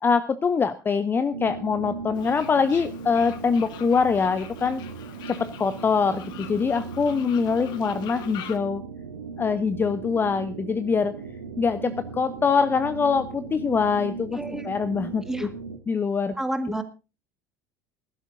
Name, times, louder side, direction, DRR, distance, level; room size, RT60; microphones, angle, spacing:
voice 1, 0.0-4.8 5.3-8.8 9.4-11.1 11.6-14.4 14.6-15.5 15.9-16.4, left 5 dB, 20° left, 13 dB, 0.7 m, -24 dB
sound 1, 1.3-15.8, right 5 dB, 80° right, 1.2 m, -38 dB
Fowl, 2.1-8.6, left 9 dB, 50° left, 1.5 m, -44 dB
voice 2, 14.3-14.7 15.3-15.5 16.4-16.8, right 1 dB, 5° right, 7 dB, 1.8 m, -29 dB
20.0 x 12.0 x 2.7 m, 0.31 s
figure-of-eight pair, 70°, 10 cm